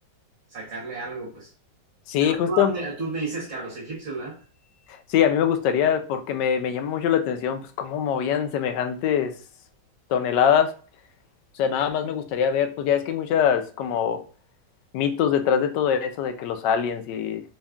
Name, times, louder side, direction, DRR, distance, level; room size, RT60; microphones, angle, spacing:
voice 1, 0.5-1.5 2.2-4.4, right 3 dB, 50° right, 1.2 m, -32 dB
voice 2, 2.1-2.7 5.1-9.3 10.1-10.7 11.6-14.2 14.9-17.4, left 8 dB, 75° left, 1.2 m, -23 dB
4.1 x 2.3 x 3.5 m
omnidirectional pair, 1.9 m